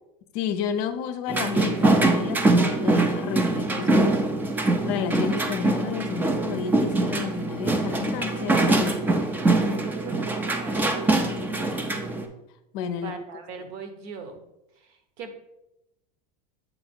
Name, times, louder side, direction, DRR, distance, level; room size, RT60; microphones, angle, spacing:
voice 1, 0.3-4.2 4.8-9.2 11.0-11.7 12.7-13.1, left 7 dB, 55° left, 10 dB, 0.6 m, -31 dB
sound 1, 1.3-12.3, right 2 dB, 10° right, 0.4 m, -23 dB
voice 2, 8.0-8.9 9.3-11.1 11.3-11.7 12.9-14.4 14.8-15.3, right 4 dB, 60° right, 7 dB, 1.0 m, -42 dB
7.6 x 2.8 x 4.4 m, 0.87 s
supercardioid pair, 150°, 21 cm